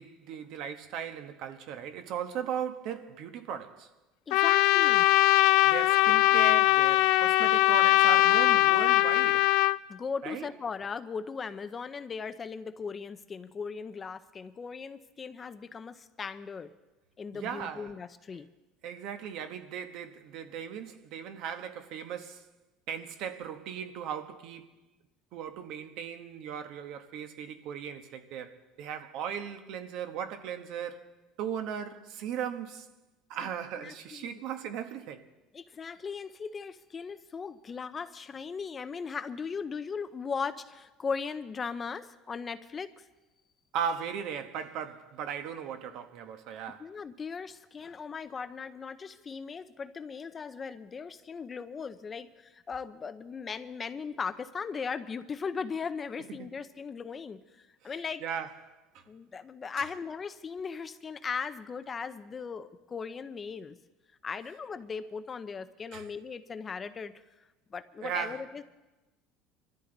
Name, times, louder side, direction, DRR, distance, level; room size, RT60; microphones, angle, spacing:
voice 1, 0.0-3.9 5.6-9.5 10.2-10.5 17.3-17.9 18.8-22.4 22.9-24.7 25.3-31.1 31.4-32.9 33.3-35.2 43.7-46.9 56.4-56.5 58.2-58.8 65.9-66.1 68.0-68.4, right 8 dB, 60° right, 1.2 m, -37 dB
Trumpet, 4.3-9.8, left 18 dB, 65° left, 0.4 m, -21 dB
voice 2, 4.3-5.1 9.9-16.7 17.2-18.5 33.8-34.4 35.5-43.0 46.8-58.2 59.1-63.7 64.2-67.1 67.7-68.6, left 5 dB, 25° left, 0.6 m, -38 dB
24.0 x 13.5 x 4.0 m
cardioid pair, 140°, 0 cm